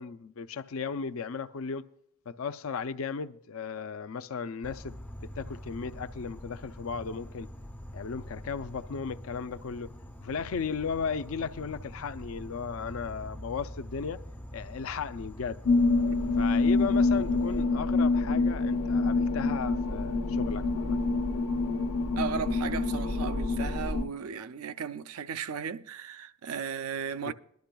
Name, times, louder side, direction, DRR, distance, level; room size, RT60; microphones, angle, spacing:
voice 1, 0.0-1.9 2.3-7.5 7.9-9.9 10.2-14.2 14.5-15.6 16.4-21.0 27.2-27.3, left 5 dB, 65° left, 0.5 m, -35 dB
Insect, 4.6-17.6, equal, 10° left, 0.4 m, -44 dB
sound 1, 15.6-24.1, left 3 dB, 85° left, 1.0 m, -26 dB
voice 2, 22.2-27.3, right 6 dB, 75° right, 0.4 m, -35 dB
21.5 x 11.5 x 2.3 m
head